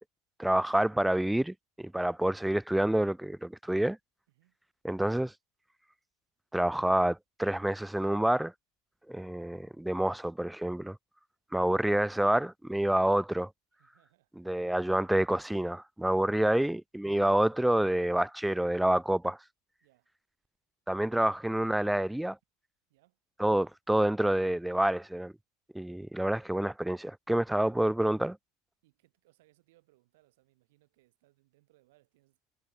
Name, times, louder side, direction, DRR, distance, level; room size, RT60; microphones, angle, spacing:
voice 1, 0.4-4.0 4.8-5.3 6.5-8.5 9.1-11.0 11.5-13.5 14.4-19.4 20.9-22.4 23.4-25.3 25.7-28.4, right 1 dB, 5° right, 0.3 m, -28 dB
voice 2, 13.7-14.6 16.1-16.4 19.8-20.1 21.3-21.4 22.9-23.2 28.8-32.4, right 19 dB, 50° right, 6.5 m, -68 dB
figure-of-eight pair, 90°, 0 cm